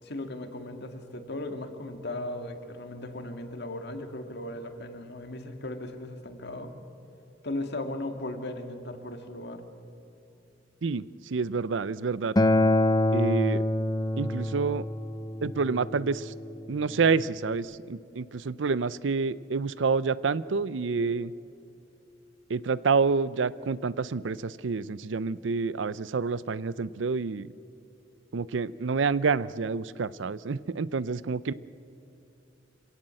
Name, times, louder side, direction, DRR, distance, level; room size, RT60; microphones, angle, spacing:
voice 1, 0.0-6.7 7.4-9.6, left 1 dB, 60° left, 6 dB, 2.0 m, -37 dB
voice 2, 10.8-12.3 13.1-13.6 14.2-14.9 15.4-16.3 16.7-21.3 22.5-27.5 28.3-31.5, right 4 dB, 75° right, 18 dB, 0.5 m, -28 dB
Acoustic guitar, 12.4-17.6, left 1 dB, 20° left, 0.7 m, -27 dB
26.0 x 17.5 x 7.7 m, 2.8 s
head